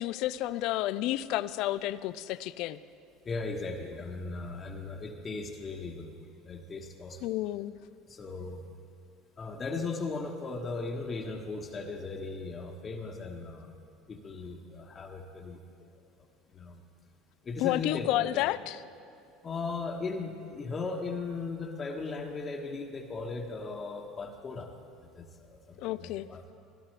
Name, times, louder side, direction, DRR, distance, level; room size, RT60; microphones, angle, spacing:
voice 1, 0.0-2.8 7.2-7.8 17.6-18.8 25.8-26.3, left 15 dB, 65° left, 16 dB, 0.3 m, -31 dB
voice 2, 3.2-6.1 6.5-7.2 8.1-8.6 9.4-13.7 14.1-15.6 16.5-16.8 17.4-18.5 19.4-24.7 25.2-25.3 25.5-26.5, left 3 dB, 30° left, 2 dB, 1.2 m, -37 dB
16.0 x 12.5 x 3.3 m, 2.7 s
hypercardioid pair, 85°, 0 cm